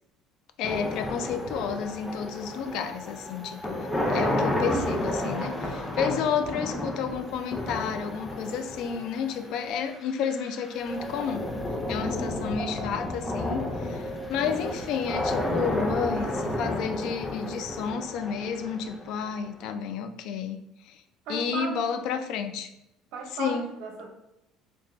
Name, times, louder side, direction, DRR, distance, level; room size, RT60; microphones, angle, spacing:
voice 1, 0.6-11.4 11.9-20.6 20.8-21.0 21.3-22.7 23.4-23.6, left 7 dB, 70° left, 9 dB, 0.4 m, -31 dB
sound 1, 0.6-19.7, left 1 dB, 10° left, 0.6 m, -32 dB
voice 2, 21.2-22.3 23.1-24.1, right 4 dB, 70° right, 2 dB, 0.9 m, -36 dB
3.4 x 2.9 x 3.1 m, 0.86 s
cardioid pair, 115°, 0 cm